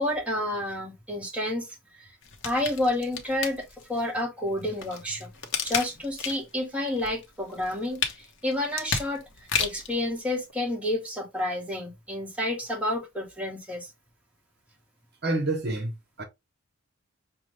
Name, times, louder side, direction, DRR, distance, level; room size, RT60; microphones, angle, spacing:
voice 1, 0.0-2.1 2.4-5.3 5.6-13.9, left 1 dB, 5° right, 1.0 m, -30 dB
sound 1, 2.2-4.0 4.6-6.6 7.0-10.0 10.5-10.6, left 6 dB, 55° left, 0.8 m, -32 dB
voice 2, 15.2-16.2, right 2 dB, 50° right, 0.9 m, -28 dB
5.7 x 2.1 x 3.1 m
head